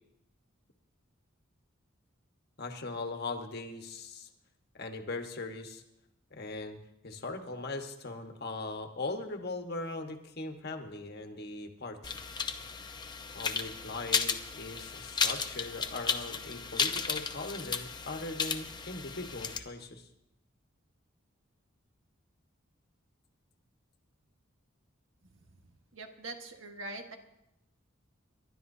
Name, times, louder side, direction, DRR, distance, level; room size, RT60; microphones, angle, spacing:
voice 1, 2.6-4.3 4.7-5.8 6.3-6.8 7.0-12.1 13.3-20.1, left 2 dB, 50° left, 5 dB, 1.4 m, -40 dB
sound 1, 12.0-19.6, left 5 dB, 20° left, 0.7 m, -34 dB
voice 2, 25.9-27.1, right 2 dB, 70° right, 4 dB, 1.6 m, -43 dB
29.0 x 12.0 x 2.7 m, 0.85 s
head